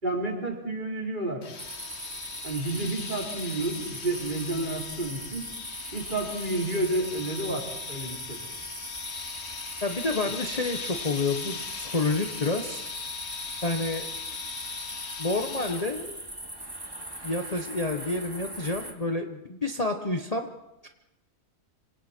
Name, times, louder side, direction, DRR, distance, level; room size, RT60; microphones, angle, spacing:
voice 1, 0.0-1.4 2.4-5.5 5.9-8.4, right 2 dB, 35° right, -1 dB, 4.6 m, -30 dB
sound 1, 1.4-16.2, left 6 dB, 55° left, 1.4 m, -39 dB
sound 2, 1.6-18.9, right 1 dB, 15° right, 2.3 m, -41 dB
voice 2, 9.8-12.8 13.6-14.1 15.2-16.2 17.2-20.5 20.8-20.9, left 2 dB, 30° left, 4 dB, 1.3 m, -29 dB
26.0 x 26.0 x 4.5 m, 0.92 s
omnidirectional pair, 1.4 m